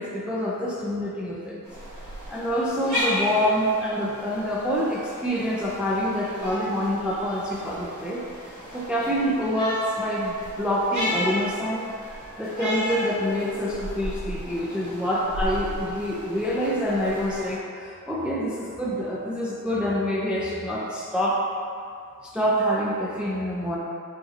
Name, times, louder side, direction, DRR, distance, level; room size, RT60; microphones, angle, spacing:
voice 1, 0.0-1.6 2.3-8.2 8.7-21.4 22.2-23.8, equal, 5° right, -4 dB, 0.4 m, -26 dB
sound 1, 1.6-17.6, equal, 55° right, 1.4 m, -34 dB
4.7 x 2.7 x 3.0 m, 2.4 s
wide cardioid pair, 105°, 34 cm